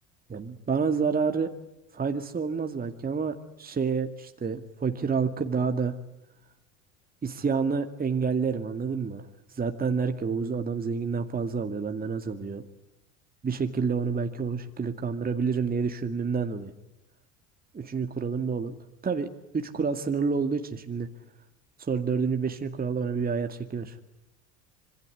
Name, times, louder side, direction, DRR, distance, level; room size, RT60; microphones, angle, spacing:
voice 1, 0.3-1.5 1.9-5.9 7.2-9.3 9.5-12.6 13.4-16.7 17.7-18.7 19.0-19.3 19.5-21.1 21.8-24.0, right 5 dB, 25° right, 6 dB, 2.3 m, -28 dB
26.5 x 22.5 x 9.7 m, 0.91 s
hypercardioid pair, 85°, 39 cm